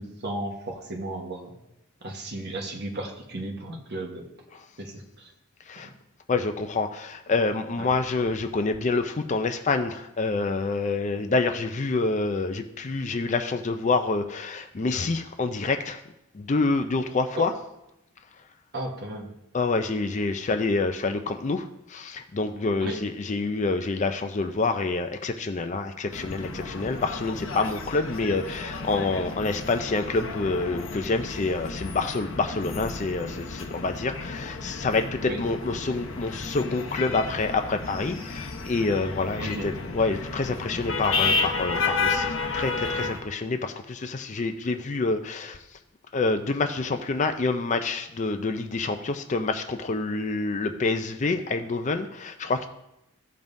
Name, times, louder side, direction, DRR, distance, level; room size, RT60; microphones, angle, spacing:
voice 1, 0.0-1.6 2.0-4.3 4.8-5.3 5.8-5.9 7.8-7.9 17.3-17.5 18.7-19.3 22.8-23.0 35.2-35.4 39.4-39.7, right 1 dB, 50° right, 1 dB, 1.2 m, -34 dB
voice 2, 6.3-16.0 16.3-17.5 19.5-45.6 46.1-52.7, left 3 dB, 35° left, 7 dB, 0.4 m, -27 dB
sound 1, 26.1-43.2, left 4 dB, 60° left, 0.9 m, -32 dB
15.5 x 5.3 x 2.6 m, 0.86 s
head